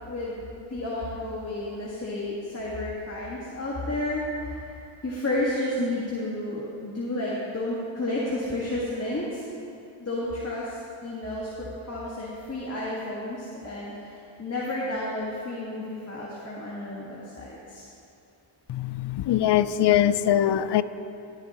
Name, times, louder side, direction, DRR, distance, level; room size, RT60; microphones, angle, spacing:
voice 1, 0.1-4.7 5.0-9.4 10.0-17.8, left 1 dB, 30° left, -6 dB, 1.7 m, -31 dB
voice 2, 18.7-20.8, left 11 dB, 60° left, 15 dB, 0.5 m, -22 dB
17.5 x 8.2 x 3.0 m, 2.7 s
cardioid pair, 50°, 49 cm